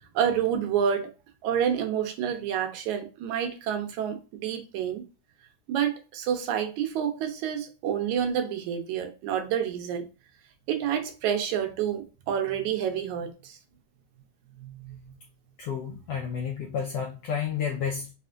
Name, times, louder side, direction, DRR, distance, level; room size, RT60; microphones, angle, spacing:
voice 1, 0.2-1.1 1.4-5.0 5.7-10.1 10.7-13.6 14.6-15.2, right 8 dB, 75° right, 2.1 m, -28 dB
voice 2, 15.6-18.1, left 7 dB, 85° left, 1.4 m, -31 dB
5.0 x 3.3 x 2.4 m
omnidirectional pair, 3.6 m